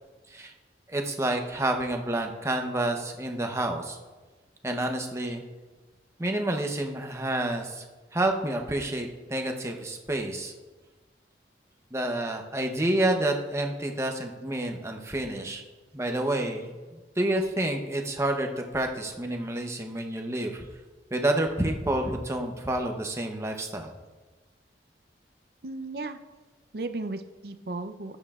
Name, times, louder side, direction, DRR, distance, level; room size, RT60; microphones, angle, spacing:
voice 1, 0.9-4.0 4.6-5.4 6.2-7.8 8.1-10.5 11.9-15.6 15.9-20.6 21.1-23.9, right 1 dB, 15° right, 3 dB, 0.8 m, -29 dB
voice 2, 25.6-26.2 26.7-28.2, right 2 dB, 55° right, 9 dB, 0.6 m, -35 dB
14.5 x 10.0 x 2.4 m, 1.3 s
head